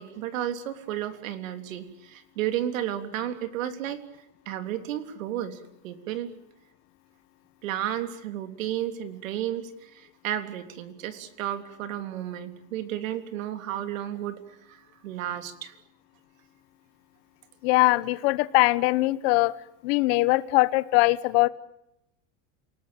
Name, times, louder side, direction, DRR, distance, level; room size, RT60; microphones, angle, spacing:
voice 1, 0.0-4.0 4.5-6.3 7.6-14.4 14.7-15.7, right 11 dB, 90° right, 8 dB, 3.5 m, -33 dB
voice 2, 17.6-19.5 19.8-21.5, left 21 dB, 50° left, 15 dB, 1.1 m, -21 dB
28.5 x 19.0 x 9.0 m, 0.80 s
supercardioid pair, 165°, 39 cm